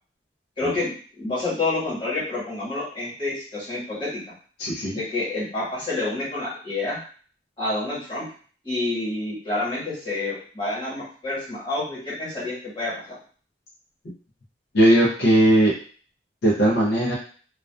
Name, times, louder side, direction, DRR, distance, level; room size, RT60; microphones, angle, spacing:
voice 1, 0.6-4.2 4.9-7.0 7.6-8.2 8.6-12.9, left 2 dB, 25° left, -9 dB, 1.3 m, -28 dB
voice 2, 4.6-4.9 14.7-15.7 16.4-17.1, right 1 dB, 65° left, -5 dB, 0.5 m, -18 dB
2.3 x 2.3 x 2.3 m, 0.43 s
head